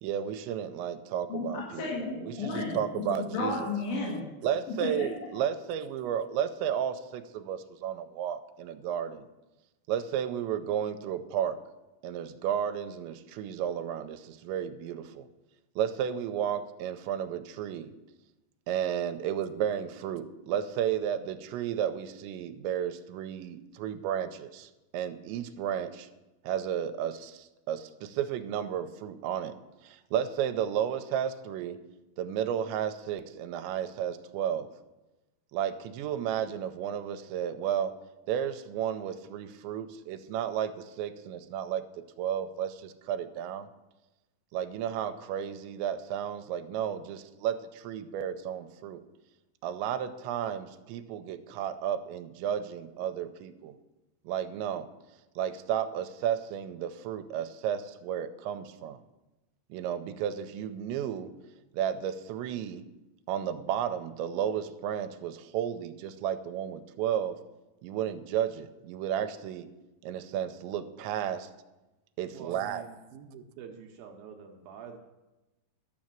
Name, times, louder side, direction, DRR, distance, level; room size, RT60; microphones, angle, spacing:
voice 1, 0.0-1.8 2.2-3.6 4.4-9.2 9.9-11.6 12.0-15.3 15.8-17.9 18.7-26.1 26.4-29.5 29.8-31.8 32.2-34.7 35.5-37.9 38.3-41.8 42.2-43.7 44.5-49.0 49.6-53.7 54.3-54.9 55.4-59.0 59.7-61.3 61.7-62.8 63.3-67.4 67.8-69.7 70.0-71.5 72.2-72.8, right 9 dB, 90° right, 9 dB, 2.9 m, -33 dB
voice 2, 1.3-4.3 4.7-5.3, left 3 dB, 80° left, -6 dB, 4.6 m, -33 dB
voice 3, 72.3-75.0, right 7 dB, 75° right, 3 dB, 2.3 m, -46 dB
12.5 x 6.4 x 7.4 m, 1.0 s
omnidirectional pair, 5.1 m